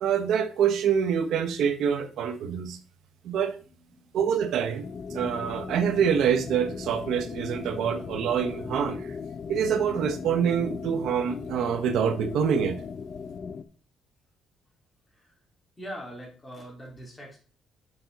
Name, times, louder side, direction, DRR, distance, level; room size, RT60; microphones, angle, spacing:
voice 1, 0.0-2.8 3.2-3.6 4.1-4.8 5.1-9.2 9.5-12.8, right 7 dB, 80° right, 9 dB, 1.0 m, -26 dB
voice 2, 3.3-4.4 15.1-15.3 15.8-17.4, equal, 20° left, -2 dB, 3.9 m, -43 dB
sound 1, 4.8-13.6, left 5 dB, 55° left, 0.6 m, -38 dB
6.9 x 5.7 x 4.0 m, 0.40 s
cardioid pair, 90°, 0 cm